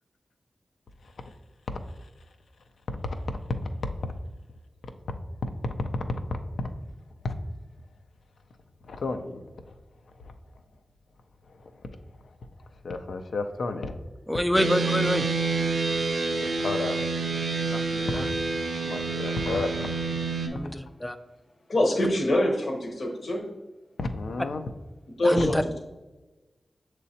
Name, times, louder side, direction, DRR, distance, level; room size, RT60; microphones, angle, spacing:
voice 1, 8.8-9.4 9.7-9.8 10.2-10.3 11.5-11.7 12.8-14.0 16.4-17.1 18.1-18.3 18.8-20.3 24.0-24.6, left 3 dB, 90° left, 0.4 m, -32 dB
voice 2, 14.3-15.3 17.7-18.3 20.5-21.2 25.2-25.6, equal, 10° left, 0.3 m, -27 dB
sound 1, 14.5-20.5, right 3 dB, 90° right, 0.5 m, -28 dB
voice 3, 21.7-23.4 25.2-25.8, left 1 dB, 65° left, 0.8 m, -25 dB
6.4 x 3.0 x 2.7 m
wide cardioid pair, 65°, 0 cm